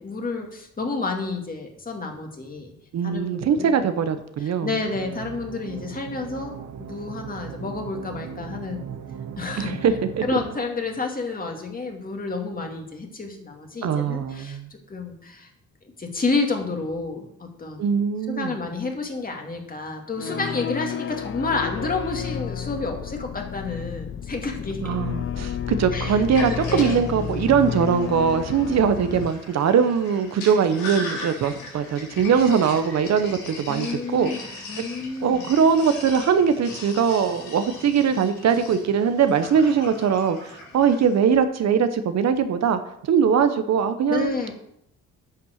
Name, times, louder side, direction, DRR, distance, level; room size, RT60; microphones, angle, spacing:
voice 1, 0.0-2.7 3.0-3.3 3.6-3.7 4.4-8.9 9.4-9.8 10.2-15.5 16.0-17.9 18.3-25.0 25.9-27.0 33.7-34.4 34.7-35.5 44.1-44.5, left 3 dB, 30° left, 2 dB, 2.3 m, -30 dB
voice 2, 2.9-4.7 9.6-10.2 13.8-14.7 17.8-18.5 24.8-34.3 35.2-42.8 43.1-44.4, right 7 dB, 60° right, 10 dB, 0.9 m, -21 dB
sound 1, 4.9-10.6, right 7 dB, 80° right, 1.1 m, -38 dB
sound 2, 20.2-29.3, left 8 dB, 45° left, 0.6 m, -31 dB
Sink (filling or washing), 26.1-41.2, left 2 dB, 80° left, 3.6 m, -39 dB
9.6 x 6.0 x 6.4 m, 0.74 s
cardioid pair, 90°, 30 cm